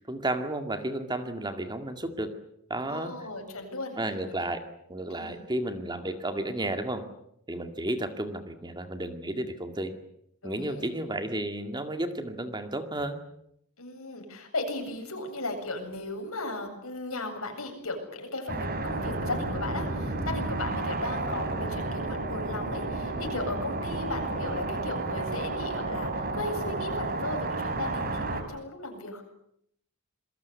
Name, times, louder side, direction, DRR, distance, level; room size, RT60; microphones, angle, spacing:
voice 1, 0.0-2.4 2.7-3.2 4.0-4.6 4.9-7.1 7.5-9.9 10.4-13.2, right 1 dB, 20° right, 7 dB, 2.1 m, -32 dB
voice 2, 2.9-4.0 5.1-5.3 10.4-10.9 13.8-29.2, left 2 dB, 70° left, 4 dB, 8.0 m, -36 dB
sound 1, 18.5-28.4, right 2 dB, 45° right, 4.0 m, -31 dB
28.0 x 22.0 x 8.4 m, 0.73 s
head